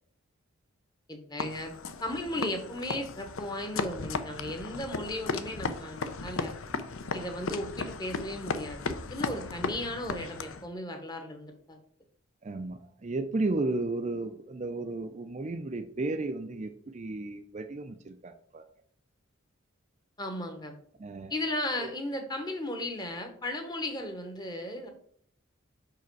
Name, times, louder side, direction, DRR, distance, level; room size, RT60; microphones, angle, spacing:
voice 1, 1.1-1.7 2.0-6.5 7.1-11.8 20.2-20.7 21.3-24.9, left 1 dB, 20° left, 6 dB, 0.9 m, -36 dB
sound 1, 1.4-10.7, left 4 dB, 65° left, 0.6 m, -36 dB
voice 2, 12.4-18.6 21.0-21.3 21.8-21.9, right 2 dB, 30° right, 7 dB, 0.4 m, -33 dB
5.8 x 4.9 x 4.6 m, 0.63 s
head